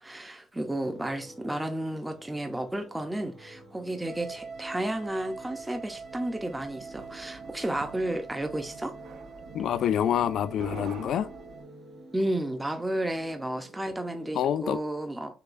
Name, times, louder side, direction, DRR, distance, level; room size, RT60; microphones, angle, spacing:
voice 1, 0.0-9.0 12.1-15.3, right 1 dB, 5° right, 0.5 m, -32 dB
sound 1, 0.6-14.8, right 1 dB, 30° right, 1.0 m, -50 dB
sound 2, 4.0-11.6, right 4 dB, 85° right, 2.3 m, -45 dB
sound 3, 6.1-12.0, right 6 dB, 65° right, 0.6 m, -47 dB
voice 2, 9.5-11.3 14.3-14.8, left 9 dB, 55° left, 0.3 m, -27 dB
6.7 x 2.2 x 2.5 m
cardioid pair, 165°, 0 cm